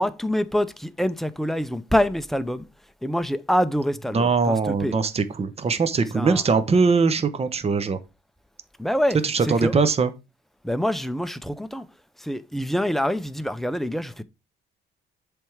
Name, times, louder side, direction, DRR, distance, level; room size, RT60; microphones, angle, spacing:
voice 1, 0.0-2.7 3.0-4.9 6.1-6.4 8.8-9.2 9.4-9.7 10.6-11.9 12.2-14.2, equal, ahead, 0.6 m, -25 dB
voice 2, 4.1-8.0 9.2-10.1, right 4 dB, 30° right, 0.8 m, -21 dB
7.5 x 3.5 x 4.8 m
cardioid pair, 90°, 20 cm